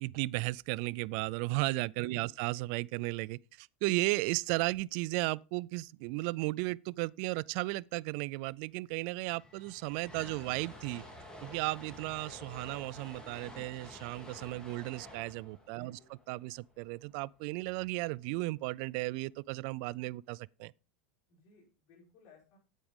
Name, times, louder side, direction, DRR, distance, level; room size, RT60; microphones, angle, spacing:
voice 1, 0.0-11.0 11.4-16.0 16.3-20.7, right 22 dB, 60° right, 0.3 m, -35 dB
voice 2, 2.0-2.3 15.7-16.1 21.3-22.6, left 6 dB, 55° left, 5.3 m, -61 dB
sound 1, 8.6-8.7 8.9-17.1, left 1 dB, 10° left, 2.9 m, -51 dB
8.6 x 8.2 x 3.6 m
supercardioid pair, 115°, 7 cm